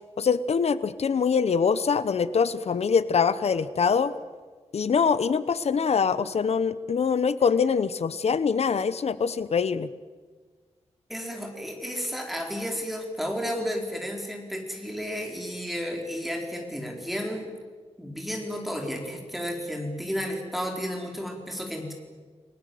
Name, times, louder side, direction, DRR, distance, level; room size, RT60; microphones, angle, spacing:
voice 1, 0.2-4.1 4.7-9.9, left 6 dB, 70° left, 15 dB, 0.9 m, -24 dB
voice 2, 11.1-17.5 18.0-21.9, equal, ahead, 1 dB, 4.4 m, -32 dB
30.0 x 20.0 x 7.8 m, 1.4 s
wide cardioid pair, 140°, 11 cm